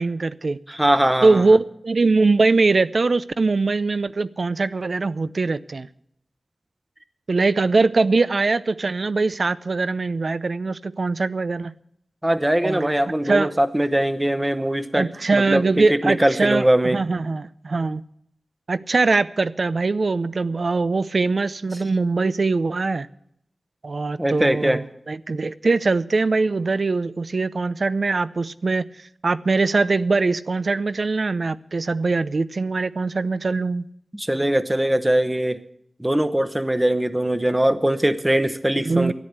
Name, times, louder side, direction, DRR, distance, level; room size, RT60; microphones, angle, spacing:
voice 1, 0.0-0.6 1.2-5.9 7.3-11.7 12.6-12.9 13.3-13.5 14.9-18.0 18.7-23.1 23.8-28.9 29.2-33.9 38.9-39.1, right 3 dB, 60° right, 0.5 m, -22 dB
voice 2, 0.7-1.4 12.2-17.0 24.2-24.8 34.1-35.6 36.0-39.1, right 1 dB, 15° right, 0.9 m, -21 dB
13.0 x 10.5 x 8.1 m
wide cardioid pair, 95°, 0 cm